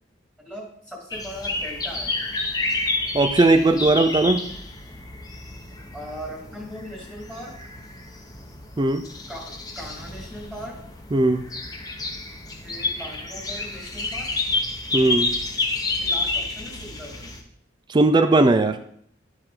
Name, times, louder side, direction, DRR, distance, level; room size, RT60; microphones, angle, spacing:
voice 1, 0.4-2.1 5.9-7.6 9.3-10.8 12.6-14.3 16.0-17.3, equal, 5° right, -3 dB, 2.0 m, -39 dB
sound 1, 1.1-17.4, left 2 dB, 20° left, 0.9 m, -30 dB
voice 2, 3.1-4.5 8.8-9.0 11.1-11.4 14.9-15.3 17.9-18.8, right 2 dB, 25° right, 8 dB, 0.4 m, -18 dB
11.5 x 4.9 x 3.7 m, 0.65 s
head